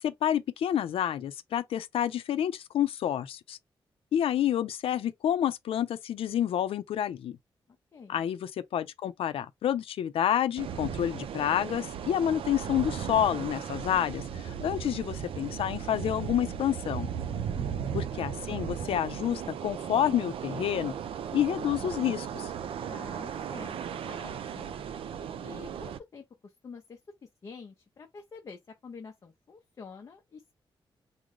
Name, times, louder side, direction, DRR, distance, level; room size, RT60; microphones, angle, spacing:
voice 1, 0.0-3.6 4.1-7.4 8.1-17.1 17.9-20.9 21.3-22.5, left 10 dB, 90° left, 0.5 m, -29 dB
voice 2, 7.9-8.2 17.3-17.8 22.9-24.8 25.4-27.0 27.4-30.5, left 5 dB, 35° left, 0.6 m, -48 dB
sound 1, 10.6-26.0, right 8 dB, 80° right, 0.5 m, -36 dB
3.8 x 2.1 x 3.1 m
wide cardioid pair, 175°, 9 cm